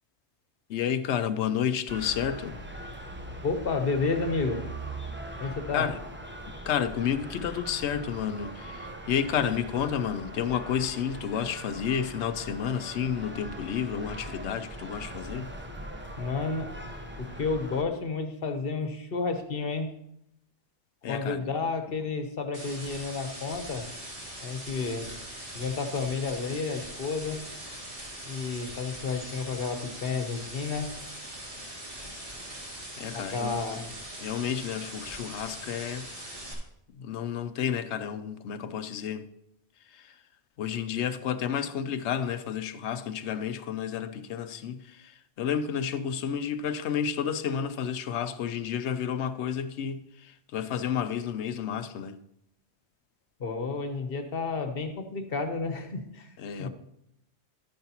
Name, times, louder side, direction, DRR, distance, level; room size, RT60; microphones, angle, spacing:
voice 1, 0.7-2.6 5.4-6.0 6.7-15.5 21.0-21.4 33.0-33.6 34.2-36.4 36.9-39.3 39.9-40.1 40.6-52.2 56.4-56.7, left 8 dB, 90° left, 0.9 m, -31 dB
sound 1, 1.9-17.8, right 1 dB, 10° right, 0.7 m, -41 dB
voice 2, 3.4-4.6 5.4-5.9 16.2-16.7 17.2-19.9 21.1-23.9 24.4-25.1 25.5-27.4 28.3-30.9 33.1-33.9 53.4-56.3 56.6-56.7, left 4 dB, 60° left, 1.2 m, -31 dB
sound 2, 22.5-36.5, right 1 dB, 55° right, 2.3 m, -41 dB
11.5 x 9.4 x 2.9 m
omnidirectional pair, 1.1 m